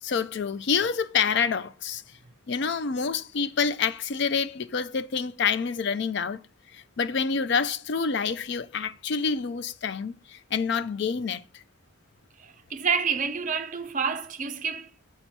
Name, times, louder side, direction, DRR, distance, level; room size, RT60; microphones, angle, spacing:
voice 1, 0.0-2.0 2.5-6.4 6.7-11.6, left 6 dB, 55° left, 0.4 m, -27 dB
voice 2, 12.4-14.9, right 6 dB, 35° right, 0.5 m, -28 dB
7.0 x 4.2 x 4.5 m
head